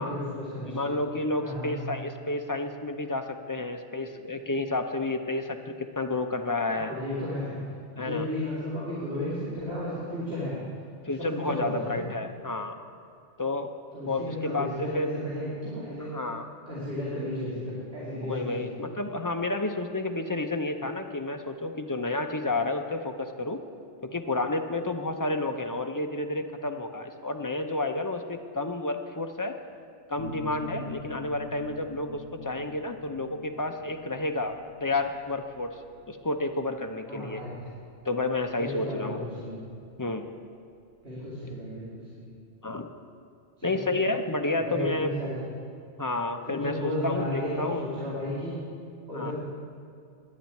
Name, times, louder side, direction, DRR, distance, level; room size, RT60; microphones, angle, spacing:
voice 1, 0.0-0.9 1.4-1.8 6.7-7.6 7.9-10.6 11.2-12.1 13.9-16.1 16.7-18.7 37.1-37.6 38.5-39.6 41.0-42.3 43.6-43.9 44.6-45.4 46.5-48.6 49.1-49.3, left 1 dB, 55° right, -8 dB, 2.8 m, -33 dB
voice 2, 0.7-6.9 8.0-8.3 11.0-12.8 13.4-13.7 14.1-15.1 16.0-16.5 18.2-23.6 24.0-29.5 30.1-35.7 36.1-37.4 38.0-39.3 40.0-40.3 42.6-42.9 43.6-45.1 46.0-47.9 49.1-49.3, left 2 dB, 25° left, 5 dB, 0.4 m, -30 dB
sound 1, 30.2-39.6, left 2 dB, 70° left, 1.2 m, -45 dB
10.5 x 7.4 x 9.4 m, 2.4 s
omnidirectional pair, 1.2 m